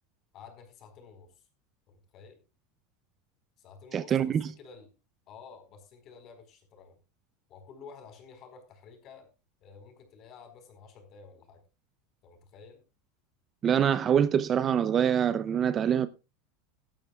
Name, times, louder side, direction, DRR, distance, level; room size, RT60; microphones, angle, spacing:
voice 1, 0.3-1.4 1.9-2.4 3.6-4.9 5.3-7.0 7.5-9.3 9.6-11.6 12.2-12.8, left 5 dB, 35° left, 4.4 m, -51 dB
voice 2, 3.9-4.5 13.6-16.1, right 8 dB, 25° right, 0.5 m, -25 dB
17.0 x 12.5 x 2.4 m
supercardioid pair, 150°, 0 cm